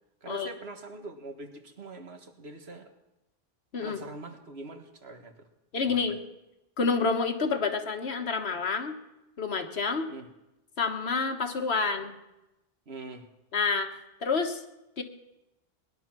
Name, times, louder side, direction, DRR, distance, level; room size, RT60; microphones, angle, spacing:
voice 1, 0.2-2.9 3.8-5.5 5.8-6.1 10.1-10.3 12.9-13.3, right 3 dB, 75° right, 5 dB, 1.8 m, -43 dB
voice 2, 5.7-6.2 6.8-9.0 9.4-10.1 10.8-12.2 13.5-14.6 15.0-15.1, left 4 dB, 75° left, 6 dB, 1.6 m, -28 dB
19.5 x 11.0 x 6.1 m, 0.94 s
omnidirectional pair, 1.1 m